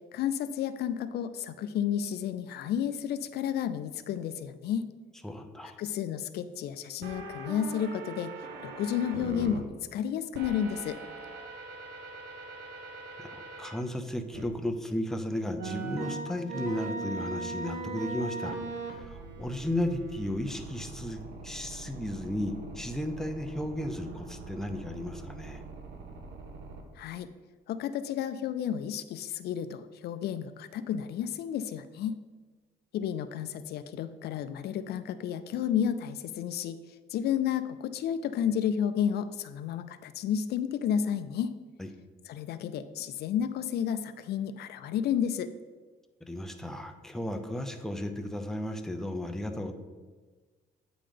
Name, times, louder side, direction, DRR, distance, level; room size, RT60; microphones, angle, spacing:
voice 1, 0.1-4.9 5.8-8.3 8.6-11.0 27.0-27.3 27.7-32.2 32.9-36.8 37.1-41.5 42.3-45.5, left 9 dB, 70° left, 12 dB, 0.4 m, -31 dB
voice 2, 5.2-5.8 13.2-25.6 41.8-41.9 46.2-49.7, left 1 dB, 5° left, 5 dB, 0.7 m, -34 dB
sound 1, 7.0-9.6 10.3-13.8 14.3-14.4 15.6-26.8, right 3 dB, 80° right, 1.1 m, -41 dB
8.5 x 3.8 x 5.0 m, 1.4 s
cardioid pair, 100°, 18 cm